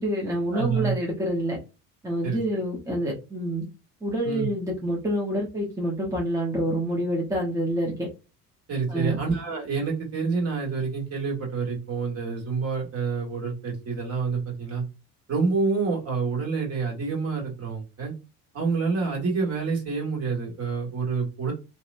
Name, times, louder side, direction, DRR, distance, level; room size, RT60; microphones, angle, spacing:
voice 1, 0.0-1.6 2.0-3.6 4.0-8.1 8.9-9.2, right 1 dB, 10° right, -2 dB, 0.7 m, -27 dB
voice 2, 0.5-0.9 2.2-2.4 4.2-4.5 8.7-14.8 15.3-18.1 18.5-21.5, right 4 dB, 45° right, -1 dB, 1.6 m, -27 dB
2.7 x 2.1 x 2.5 m, 0.29 s
cardioid pair, 115°, 34 cm